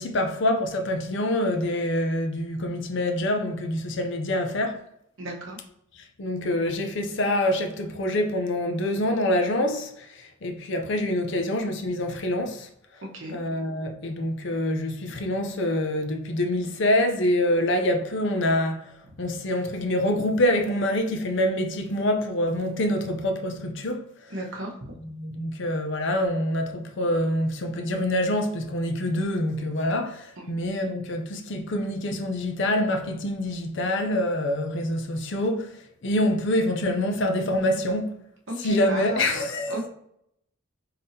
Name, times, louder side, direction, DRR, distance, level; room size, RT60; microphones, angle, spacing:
voice 1, 0.0-4.8 6.2-12.7 13.3-18.9 19.2-24.0 25.1-38.1 38.6-39.8, left 1 dB, 60° left, 0.5 m, -26 dB
voice 2, 5.2-5.6 13.1-13.4 24.3-24.7 30.4-30.5 38.5-39.9, right 1 dB, 65° right, 1.0 m, -35 dB
3.8 x 3.5 x 2.7 m
head